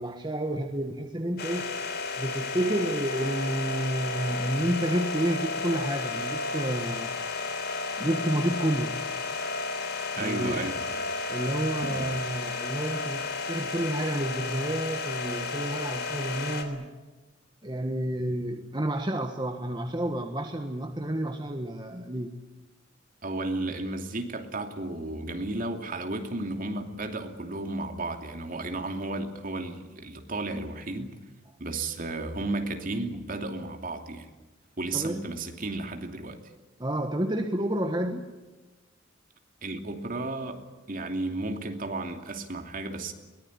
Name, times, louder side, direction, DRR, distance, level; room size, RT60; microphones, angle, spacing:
voice 1, 0.0-1.7 2.2-7.1 8.0-9.0 10.2-10.6 11.3-16.9 17.6-22.3 34.9-35.2 36.8-38.3, right 1 dB, 20° right, 4 dB, 1.5 m, -30 dB
sound 1, 1.4-16.6, left 3 dB, 55° left, 3.5 m, -32 dB
voice 2, 10.2-10.9 11.8-12.1 23.2-31.2 31.6-34.3 34.8-36.4 39.6-40.6 40.9-43.1, right 2 dB, 45° right, 4 dB, 2.8 m, -33 dB
22.5 x 19.5 x 9.7 m, 1.2 s
head